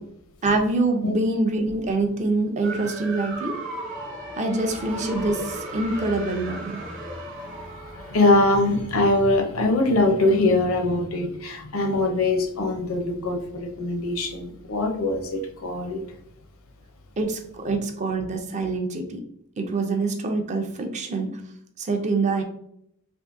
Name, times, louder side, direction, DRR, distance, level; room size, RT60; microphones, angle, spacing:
voice 1, 0.4-3.6 4.4-6.8 17.2-19.2 19.6-21.4 21.8-22.4, right 3 dB, 35° right, 5 dB, 0.4 m, -25 dB
sound 1, 2.6-9.2, right 1 dB, 60° right, 0.9 m, -36 dB
voice 2, 8.1-16.0, left 2 dB, 70° left, 5 dB, 0.6 m, -22 dB
3.5 x 2.5 x 2.5 m, 0.71 s
head